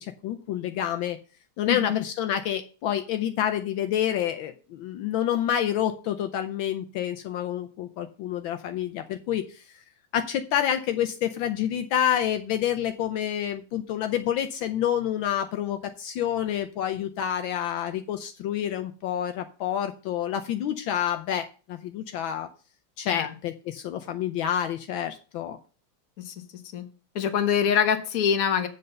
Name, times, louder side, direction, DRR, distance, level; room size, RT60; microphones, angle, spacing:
voice 1, 0.0-1.2 1.6-9.6 10.1-22.5 23.0-25.6, left 10 dB, 75° left, 7 dB, 1.4 m, -28 dB
voice 2, 1.7-2.0 23.1-23.3 26.2-26.3 26.7-26.8 27.1-28.7, left 8 dB, 50° left, 7 dB, 1.4 m, -24 dB
7.8 x 5.4 x 6.7 m, 0.37 s
omnidirectional pair, 2.3 m